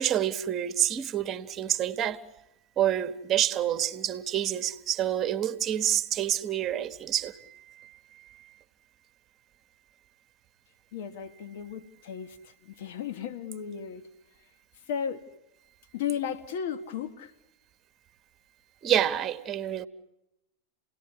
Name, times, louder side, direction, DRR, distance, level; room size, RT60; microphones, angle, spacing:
voice 1, 0.0-2.2 2.8-7.9 18.8-19.9, right 11 dB, 30° right, 1.4 m, -28 dB
voice 2, 10.9-14.1 14.9-15.2 15.9-17.3, left 8 dB, 55° left, 1.5 m, -35 dB
29.0 x 18.5 x 9.7 m
figure-of-eight pair, 90°, 0 cm